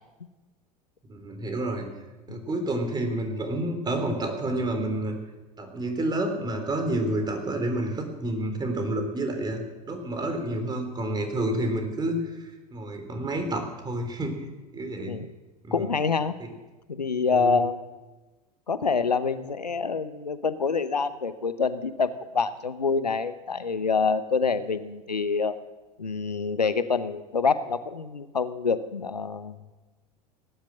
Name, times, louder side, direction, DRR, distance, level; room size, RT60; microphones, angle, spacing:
voice 1, 1.1-1.9 2.3-5.2 5.6-9.6 9.9-15.2 15.6-15.9 16.4-16.5 17.3-17.6, right 1 dB, 20° right, 5 dB, 3.7 m, -29 dB
voice 2, 15.0-15.3 15.7-16.4 16.9-17.8 18.7-25.6 26.0-29.6, left 5 dB, 85° left, 14 dB, 0.8 m, -26 dB
18.5 x 10.5 x 7.4 m, 1.2 s
figure-of-eight pair, 80°, 21 cm